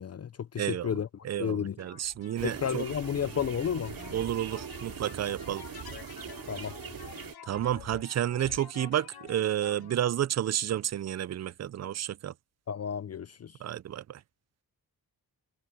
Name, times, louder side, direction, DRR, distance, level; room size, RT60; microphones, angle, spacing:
voice 1, 0.0-1.1 1.4-1.8 2.4-3.9 6.5-6.7 12.7-13.5, left 8 dB, 45° left, 0.5 m, -32 dB
voice 2, 0.6-2.9 4.1-5.6 7.5-12.3 13.6-14.2, right 11 dB, 45° right, 0.4 m, -31 dB
sound 1, 1.8-10.0, left 9 dB, 80° left, 1.3 m, -49 dB
sound 2, 2.4-7.3, right 7 dB, 65° right, 2.4 m, -42 dB
wide cardioid pair, 110°, 37 cm